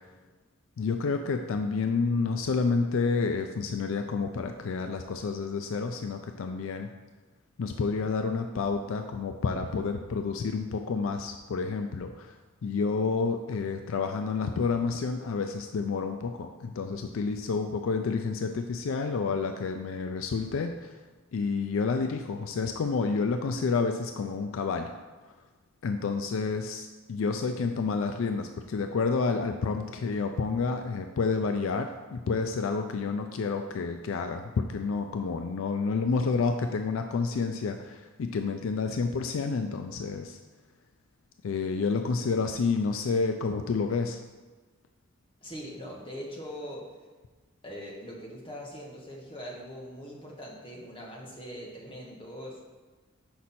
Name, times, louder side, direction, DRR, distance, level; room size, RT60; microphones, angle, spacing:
voice 1, 0.8-6.9 7.6-12.4 12.6-20.9 21.3-24.9 25.8-40.4 41.4-44.2, left 4 dB, 70° left, 6 dB, 0.4 m, -29 dB
voice 2, 45.4-46.8 47.6-52.6, equal, 25° left, -3 dB, 1.2 m, -41 dB
5.9 x 5.2 x 4.2 m, 1.3 s
head